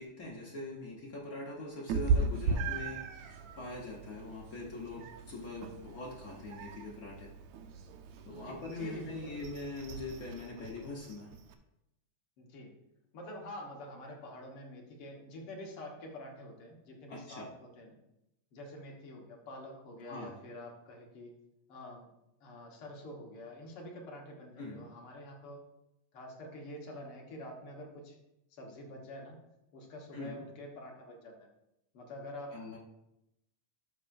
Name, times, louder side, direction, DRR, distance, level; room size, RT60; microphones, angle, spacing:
voice 1, 0.0-7.3 8.3-11.3 17.1-17.5 20.1-20.3 24.6-24.9 30.1-30.4 32.5-32.8, left 2 dB, 85° left, -3 dB, 0.7 m, -43 dB
Meow, 1.9-11.5, right 4 dB, 75° right, 1.9 m, -37 dB
voice 2, 8.4-9.6 12.4-12.7 13.1-18.0 18.5-21.3 21.7-22.1 22.4-25.6 26.1-28.2 28.5-29.4 29.7-31.5 31.9-32.8, left 1 dB, 55° left, 0 dB, 2.0 m, -47 dB
11.5 x 6.8 x 2.6 m, 0.86 s
omnidirectional pair, 3.4 m